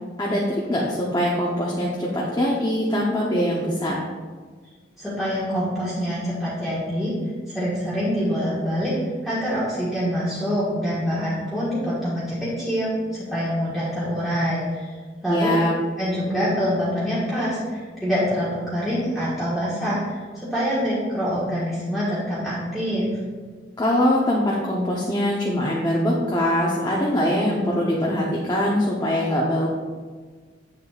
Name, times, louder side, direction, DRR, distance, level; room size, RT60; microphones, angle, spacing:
voice 1, 0.7-4.0 15.3-15.8 23.8-29.7, left 1 dB, 20° left, -4 dB, 0.8 m, -22 dB
voice 2, 5.0-7.1 7.5-8.9 9.2-14.9 15.2-15.5 16.0-23.1, equal, ahead, -11 dB, 1.4 m, -25 dB
8.4 x 6.9 x 2.4 m, 1.5 s
head